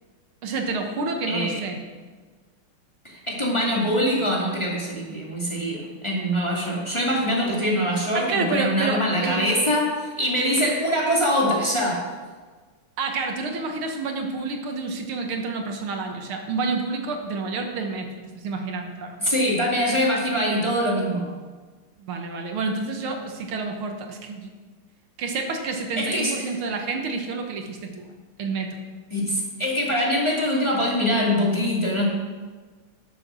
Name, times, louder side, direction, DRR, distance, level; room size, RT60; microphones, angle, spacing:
voice 1, 0.4-1.8 8.1-9.4 13.0-18.1 18.4-19.2 22.0-24.5 25.2-28.1 28.4-28.8, right 3 dB, 75° right, 3 dB, 2.0 m, -29 dB
voice 2, 1.3-1.6 3.0-12.1 19.2-21.3 26.0-26.3 29.1-32.0, equal, 15° left, -4 dB, 2.2 m, -23 dB
12.5 x 6.9 x 6.1 m, 1.4 s
omnidirectional pair, 2.4 m